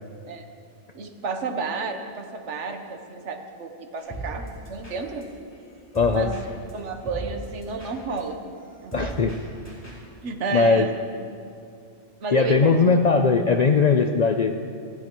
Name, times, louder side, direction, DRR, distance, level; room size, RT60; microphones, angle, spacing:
voice 1, 0.9-5.3 6.1-6.5 6.7-8.5 8.8-9.1 10.2-11.0 12.2-13.0, right 4 dB, 75° right, 6 dB, 1.3 m, -31 dB
sound 1, 4.0-10.1, right 2 dB, 15° left, 3.5 m, -39 dB
voice 2, 5.9-6.3 8.9-9.3 10.5-10.9 12.3-14.6, left 5 dB, 55° left, 6 dB, 0.5 m, -19 dB
27.5 x 9.6 x 3.0 m, 2.4 s
omnidirectional pair, 1.2 m